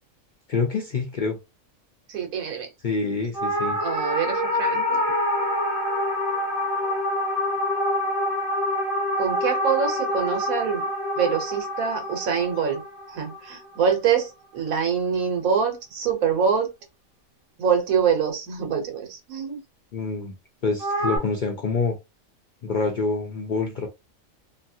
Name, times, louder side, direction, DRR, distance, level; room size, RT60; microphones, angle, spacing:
voice 1, 0.5-1.4 2.8-3.8 19.9-20.3 20.6-22.0 22.6-23.9, left 4 dB, 60° left, 0.5 m, -26 dB
voice 2, 2.1-2.7 3.8-5.0 9.2-10.8 11.2-12.8 13.1-16.7 17.6-19.6, right 7 dB, 85° right, 1.4 m, -25 dB
sound 1, 3.3-13.9 20.8-21.2, left 1 dB, 45° right, 1.0 m, -26 dB
3.0 x 2.4 x 2.6 m
omnidirectional pair, 1.4 m